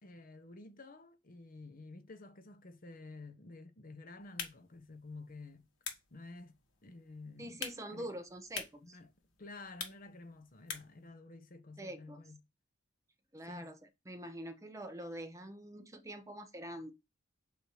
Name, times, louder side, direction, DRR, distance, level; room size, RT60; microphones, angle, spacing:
voice 1, 0.0-5.7 6.1-8.1 8.8-9.1 9.4-12.4 13.5-13.7, left 3 dB, 45° left, 0.8 m, -51 dB
sound 1, 4.2-11.1, left 6 dB, 85° left, 1.4 m, -48 dB
voice 2, 7.4-9.0 11.8-12.2 13.3-13.8 14.1-16.9, right 1 dB, 15° right, 0.7 m, -45 dB
8.0 x 2.7 x 4.7 m
head